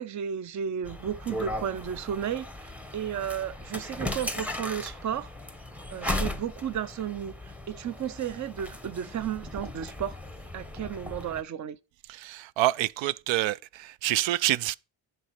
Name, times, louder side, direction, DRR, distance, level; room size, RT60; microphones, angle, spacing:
voice 1, 0.0-5.3 5.9-10.2 10.5-11.8, right 9 dB, 40° right, 0.6 m, -33 dB
sound 1, 0.8-11.4, left 1 dB, 5° right, 0.9 m, -37 dB
voice 2, 12.1-14.7, right 15 dB, 80° right, 0.5 m, -27 dB
10.0 x 5.4 x 5.8 m
cardioid pair, 140°, 45 cm